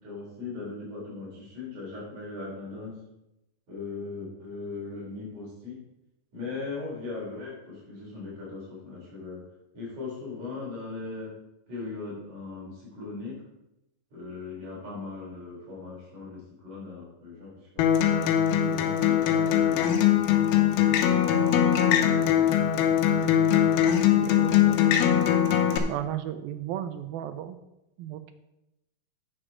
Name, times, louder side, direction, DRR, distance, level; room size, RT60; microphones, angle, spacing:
voice 1, 0.0-3.0 3.7-5.8 6.3-9.5 9.7-11.4 11.7-13.4 14.1-18.3 18.6-20.2 20.7-21.6 21.9-25.1, left 3 dB, 50° right, -5 dB, 5.0 m, -40 dB
Acoustic guitar, 17.8-25.8, left 10 dB, 90° left, 2.8 m, -22 dB
voice 2, 25.9-27.6 28.0-28.3, right 11 dB, 80° right, 10 dB, 2.4 m, -34 dB
9.0 x 7.4 x 5.0 m, 0.88 s
omnidirectional pair, 4.3 m